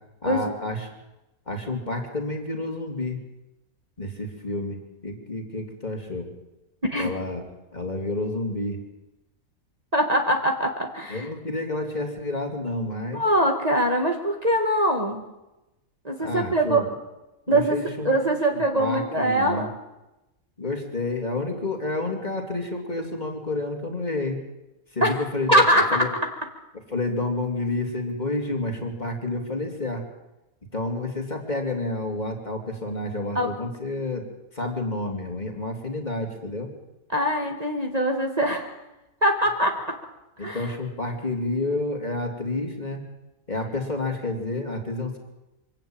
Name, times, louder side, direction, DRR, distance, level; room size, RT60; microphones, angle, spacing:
voice 1, 0.2-0.9 1.5-3.2 4.0-4.8 5.0-6.3 6.9-7.4 7.7-8.8 11.1-13.2 16.2-16.9 17.5-18.1 18.5-19.7 20.6-24.4 24.9-26.1 26.9-30.0 30.7-34.3 34.5-36.7 40.4-43.0 43.5-45.2, left 2 dB, 30° left, 2 dB, 3.0 m, -29 dB
voice 2, 9.9-11.3 13.1-15.2 16.0-16.8 17.5-17.8 18.1-19.7 25.0-25.2 25.5-26.1 33.4-33.5 37.1-38.7 39.2-40.0 40.4-40.7, right 1 dB, 30° right, 1 dB, 1.9 m, -22 dB
24.5 x 12.5 x 9.0 m, 0.98 s
omnidirectional pair, 1.5 m